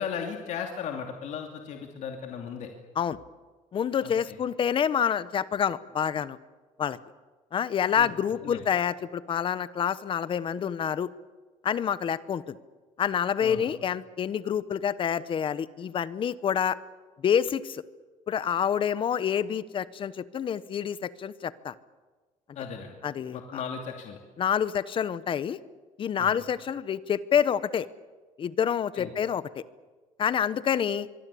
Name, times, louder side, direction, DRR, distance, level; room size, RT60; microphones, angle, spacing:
voice 1, 0.0-2.7 4.0-4.4 8.0-8.1 8.4-8.7 13.4-13.7 22.5-22.9 23.3-24.2 26.2-26.4 28.9-29.1, left 7 dB, 60° left, 3 dB, 2.8 m, -36 dB
voice 2, 3.7-6.4 6.8-7.0 7.5-11.1 11.6-12.6 13.0-16.8 17.2-17.8 18.3-21.7 23.0-23.6 24.4-25.6 26.0-27.9 28.4-29.6 30.2-31.1, left 8 dB, 40° left, 16 dB, 1.0 m, -27 dB
24.0 x 24.0 x 8.5 m, 1.3 s
cardioid pair, 145°, 14 cm